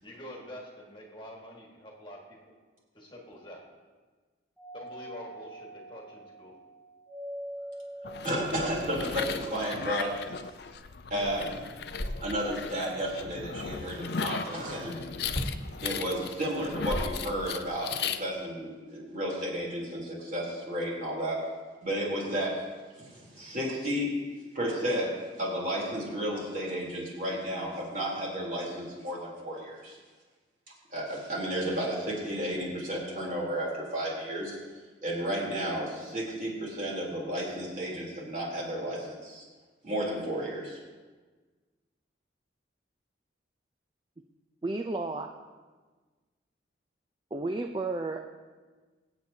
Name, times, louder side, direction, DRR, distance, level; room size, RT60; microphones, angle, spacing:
voice 1, 0.0-2.4 2.9-3.6 4.7-6.5, left 1 dB, 25° left, -1 dB, 1.7 m, -46 dB
Doorbell, 4.6-9.4, right 1 dB, ahead, 3.1 m, -44 dB
sound 1, 8.0-18.2, left 6 dB, 60° left, 0.5 m, -37 dB
voice 2, 8.2-10.1 11.1-11.6 12.2-15.0 15.8-21.4 21.8-22.5 23.0-24.1 24.5-25.1 25.4-30.0 30.9-34.6 35.0-39.4 39.8-40.8, equal, 45° right, -4 dB, 3.4 m, -32 dB
sound 2, 10.7-10.8 11.2-12.7 15.2-15.7 16.5-17.7, equal, 45° left, 1.3 m, -36 dB
voice 3, 44.6-45.3 47.3-48.3, right 2 dB, 25° right, 4 dB, 0.4 m, -32 dB
24.0 x 8.0 x 2.8 m, 1.4 s
head